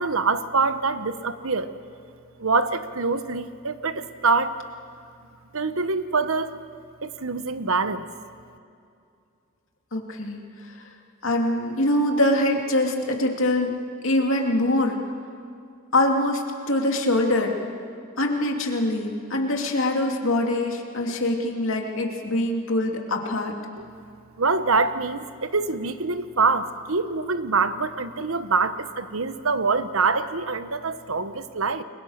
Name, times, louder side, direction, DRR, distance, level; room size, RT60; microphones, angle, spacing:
voice 1, 0.0-1.7 2.4-4.6 5.5-6.6 7.0-8.1 23.8-23.9 24.4-31.8, right 4 dB, 75° right, 11 dB, 1.2 m, -25 dB
voice 2, 9.9-10.4 11.2-13.7 14.0-15.0 15.9-17.6 18.2-23.5, left 1 dB, 65° left, 2 dB, 2.8 m, -23 dB
29.5 x 23.0 x 6.6 m, 2.4 s
head